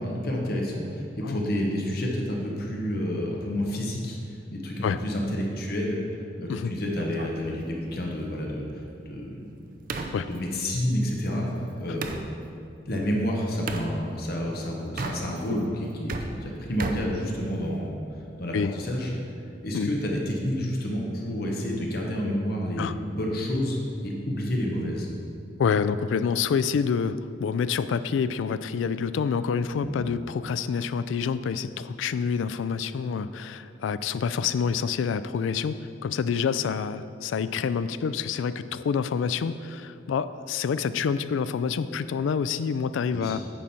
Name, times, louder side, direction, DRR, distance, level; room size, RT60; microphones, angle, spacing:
voice 1, 0.0-6.0 6.4-9.5 10.2-11.5 11.8-12.1 12.9-17.9 18.4-19.1 19.6-25.1 29.7-30.0 43.1-43.4, equal, 55° left, -1 dB, 1.2 m, -29 dB
sound 1, 7.0-12.3 13.7-13.9 14.8-15.6 15.9-17.9, right 3 dB, 45° right, 0.5 m, -37 dB
voice 2, 25.6-43.4, left 6 dB, 85° left, 13 dB, 0.3 m, -27 dB
8.9 x 6.3 x 4.3 m, 2.5 s
head